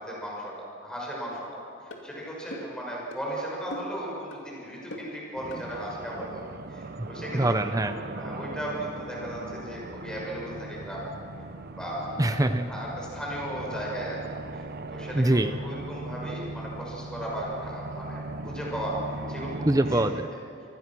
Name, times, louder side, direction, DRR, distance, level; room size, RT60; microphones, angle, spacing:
voice 1, 0.0-6.4 6.7-7.4 7.8-11.1 11.8-12.4 12.7-14.2 14.5-14.6 14.9-19.0 19.3-20.0, equal, 5° left, -4 dB, 5.9 m, -36 dB
sound 1, 1.3-1.4 1.9-2.1 2.5-2.8 3.1-3.3 3.7-4.0 4.3-4.5 4.9-5.2 5.5-5.7, equal, 70° left, 2.5 m, -40 dB
sound 2, 5.3-20.1, right 2 dB, 50° right, 0.8 m, -39 dB
voice 2, 7.3-8.0 12.2-12.7 15.1-15.5 19.6-20.3, right 1 dB, 15° right, 9 dB, 0.6 m, -23 dB
25.0 x 19.5 x 6.2 m, 2.8 s
head